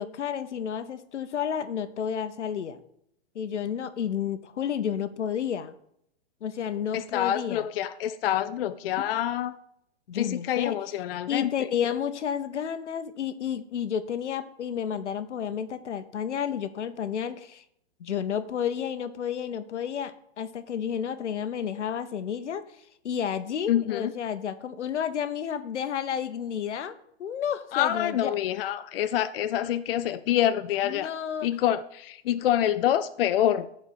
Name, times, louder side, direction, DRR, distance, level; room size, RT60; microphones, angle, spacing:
voice 1, 0.0-2.8 3.3-5.7 6.4-7.7 9.0-9.1 10.1-10.8 11.3-17.6 18.0-22.6 23.0-28.3 30.8-31.5, left 8 dB, 90° left, 11 dB, 0.9 m, -31 dB
voice 2, 6.9-9.5 10.2-11.5 23.7-24.1 27.7-31.1 31.4-33.7, left 11 dB, 55° left, 11 dB, 0.5 m, -26 dB
11.5 x 4.4 x 4.2 m, 0.73 s
hypercardioid pair, 150°, 34 cm